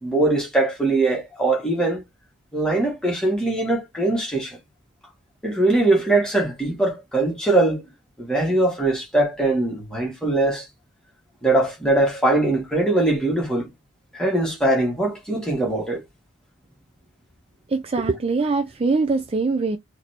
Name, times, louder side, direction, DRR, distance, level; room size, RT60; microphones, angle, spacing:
voice 1, 0.0-2.0 2.5-4.6 5.4-7.9 8.2-10.7 11.4-13.7 14.1-16.0, right 2 dB, 5° left, 1.8 m, -21 dB
voice 2, 17.7-19.8, right 3 dB, 30° right, 0.4 m, -22 dB
4.1 x 3.3 x 2.9 m
head